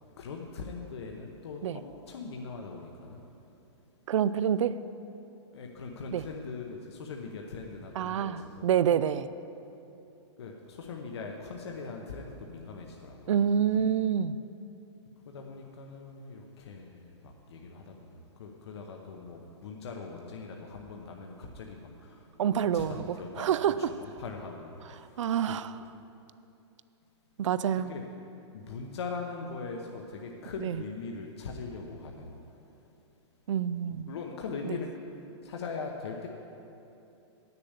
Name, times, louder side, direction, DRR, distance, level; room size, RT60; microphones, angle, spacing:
voice 1, 0.2-3.2 5.5-8.7 10.4-13.4 13.7-13.9 15.2-25.9 27.7-28.0 28.5-32.4 33.9-34.9 35.4-36.3, left 4 dB, 60° left, 1 dB, 0.9 m, -41 dB
voice 2, 4.1-4.8 6.1-6.2 8.0-9.3 13.3-14.4 22.4-23.9 25.2-25.8 27.4-27.9 30.6-30.8 33.5-34.1 34.6-34.8, right 8 dB, 90° right, 15 dB, 0.4 m, -27 dB
9.3 x 6.8 x 8.1 m, 2.9 s
hypercardioid pair, 175°, 15 cm